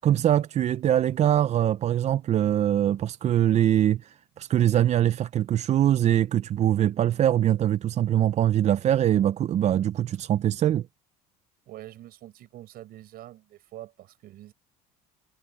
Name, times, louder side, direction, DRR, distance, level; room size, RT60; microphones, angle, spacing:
voice 1, 0.0-10.9, right 11 dB, 40° right, 0.5 m, -23 dB
voice 2, 11.7-14.5, right 14 dB, 60° right, 5.1 m, -45 dB
supercardioid pair, 105°, 18 cm